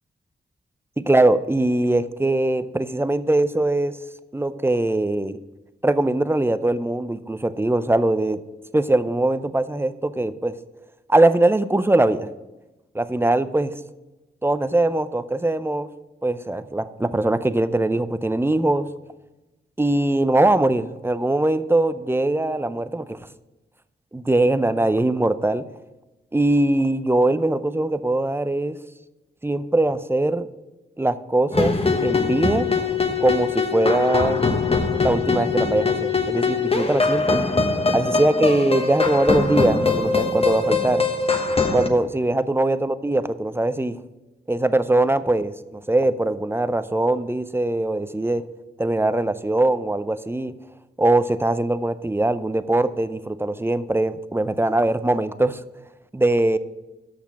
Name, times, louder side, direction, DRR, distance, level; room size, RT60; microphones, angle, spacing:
voice 1, 1.0-4.0 4.3-5.4 5.8-8.4 8.7-10.5 11.1-12.3 12.9-13.7 14.4-15.9 16.2-18.9 19.8-23.2 24.1-25.6 26.3-28.8 29.4-30.5 31.0-31.7 32.0-32.7 33.2-34.5 35.0-37.4 37.9-41.1 41.7-44.0 44.5-48.5 48.8-50.5 51.0-55.6 56.1-56.6, right 2 dB, 10° right, 13 dB, 0.5 m, -21 dB
sound 1, 31.5-41.9, left 4 dB, 30° left, 1.1 m, -22 dB
6.6 x 5.9 x 7.0 m, 1.1 s
cardioid pair, 60°, 21 cm